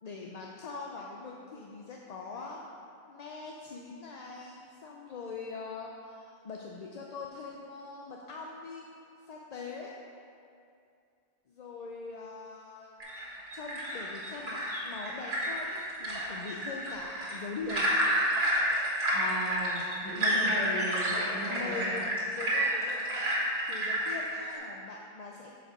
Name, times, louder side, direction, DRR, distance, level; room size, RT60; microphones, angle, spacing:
voice 1, 0.0-2.6 3.1-8.9 9.3-9.9 11.5-17.9 20.2-20.6 21.5-22.0 22.3-23.3 23.6-25.5, left 4 dB, 50° left, -1 dB, 0.5 m, -42 dB
sound 1, 13.0-24.6, equal, 80° right, 2.0 m, -30 dB
voice 2, 19.1-22.1, right 1 dB, 20° left, -8 dB, 1.7 m, -37 dB
6.7 x 5.1 x 5.3 m, 2.5 s
omnidirectional pair, 1.1 m